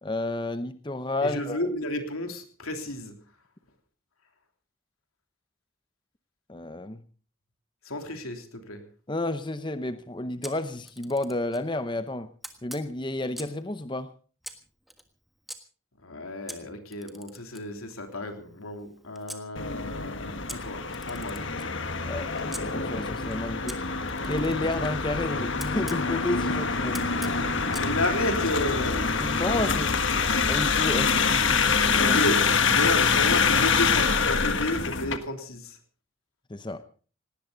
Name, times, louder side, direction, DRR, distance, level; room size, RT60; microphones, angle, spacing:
voice 1, 0.0-1.6 6.5-7.0 9.1-12.3 12.6-14.1 22.0-22.3 22.6-23.8 24.2-27.0 29.2-30.0 30.5-32.2 36.5-36.8, left 2 dB, 20° left, 0.7 m, -31 dB
voice 2, 1.2-3.1 7.8-8.8 16.0-21.5 27.7-29.0 31.9-32.4 32.7-35.8, left 1 dB, 85° left, 3.2 m, -32 dB
Camera, 10.4-11.7 12.4-13.7 14.4-15.6 16.5-19.4 20.5-22.6 23.7-26.0 26.9-27.9, equal, ahead, 1.4 m, -44 dB
sound 1, 19.6-35.2, left 5 dB, 60° left, 1.5 m, -25 dB
19.0 x 18.0 x 3.9 m
head